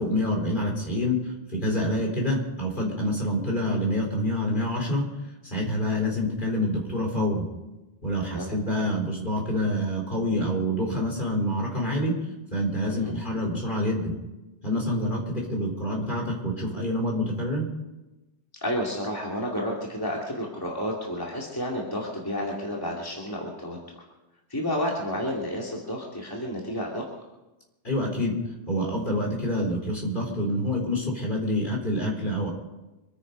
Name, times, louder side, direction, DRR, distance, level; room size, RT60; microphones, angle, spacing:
voice 1, 0.0-5.0 5.4-7.5 8.0-12.1 12.5-14.1 14.6-17.7 27.8-28.3 28.7-32.5, left 1 dB, 45° left, -1 dB, 4.2 m, -27 dB
voice 2, 18.6-23.8 24.5-27.0, equal, 20° left, -3 dB, 2.4 m, -31 dB
25.0 x 9.8 x 5.3 m, 1.0 s
omnidirectional pair, 1.2 m